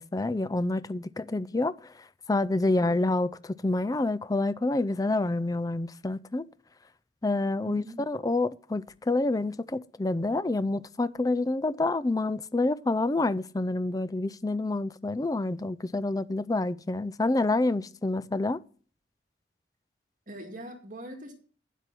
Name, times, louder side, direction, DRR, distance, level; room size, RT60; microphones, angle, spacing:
voice 1, 0.0-1.9 2.3-6.5 7.2-18.6, left 2 dB, 20° left, 0.4 m, -28 dB
voice 2, 7.6-8.0 20.3-21.3, right 1 dB, 45° right, 2.1 m, -42 dB
10.0 x 7.9 x 6.0 m
head